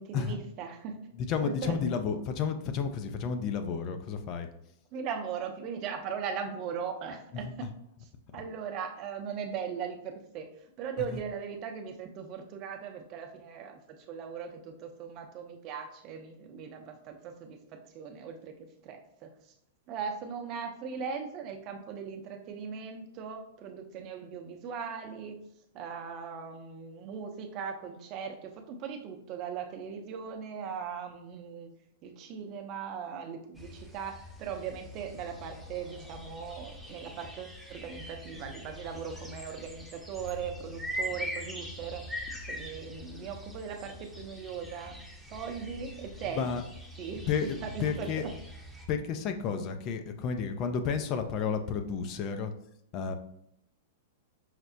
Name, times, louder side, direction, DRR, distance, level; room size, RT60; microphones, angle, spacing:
voice 1, 0.0-1.0 1.4-1.8 4.9-7.7 8.3-10.5 10.8-19.3 19.9-25.4 25.7-31.7 32.0-42.0 42.5-45.0 45.3-46.5 47.0-48.3, right 6 dB, 40° right, 5 dB, 0.6 m, -39 dB
voice 2, 1.2-4.5 7.4-7.5 11.0-11.1 46.4-46.6 47.3-48.2 48.9-52.5 52.9-53.1, left 6 dB, 40° left, 7 dB, 0.4 m, -31 dB
sound 1, 33.5-48.9, equal, 5° left, 0.7 m, -43 dB
5.7 x 2.0 x 2.6 m, 0.75 s
hypercardioid pair, 100°, 0 cm